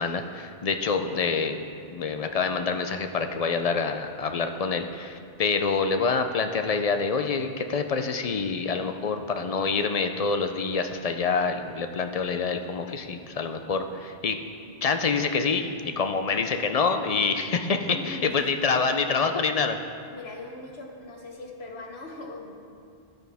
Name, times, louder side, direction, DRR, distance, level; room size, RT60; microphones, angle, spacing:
voice 1, 0.0-1.6 1.9-14.4 14.8-19.8, left 4 dB, 50° left, 7 dB, 0.4 m, -26 dB
voice 2, 17.9-19.1 20.1-22.8, left 2 dB, 80° left, 1 dB, 1.3 m, -40 dB
10.5 x 9.0 x 3.4 m, 2.5 s
omnidirectional pair, 1.1 m